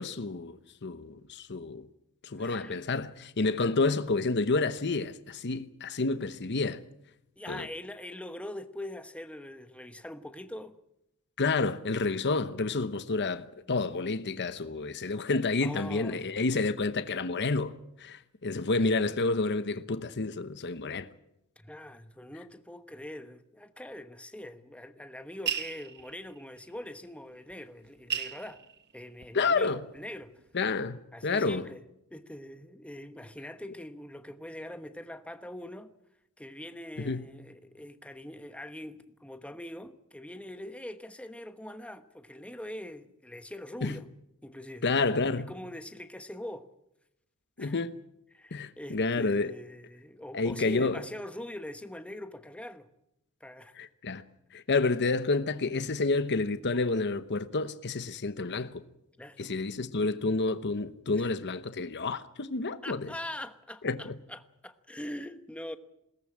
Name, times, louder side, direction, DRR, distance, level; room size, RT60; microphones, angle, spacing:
voice 1, 0.0-1.9 2.2-6.8 7.5-7.7 11.4-21.1 29.3-29.8 30.5-31.7 37.0-37.3 43.8-44.0 44.8-45.5 47.6-48.0 48.5-49.5 50.3-51.0 53.8-54.2 54.5-58.8 59.4-63.1 63.8-64.1, left 3 dB, 50° left, 1.0 m, -29 dB
voice 2, 2.4-2.8 7.4-10.8 15.6-16.5 21.6-28.6 28.9-30.4 31.1-31.8 32.1-35.9 36.4-44.0 44.4-44.8 45.5-46.7 47.6-47.7 48.3-52.9 53.4-53.7 59.2-59.5 61.1-61.3 62.8-65.8, left 1 dB, 5° left, 1.1 m, -43 dB
sound 1, 25.5-26.4 27.5-27.6 27.9-29.5 30.0-30.6, right 8 dB, 50° right, 1.2 m, -35 dB
21.5 x 18.0 x 8.7 m
head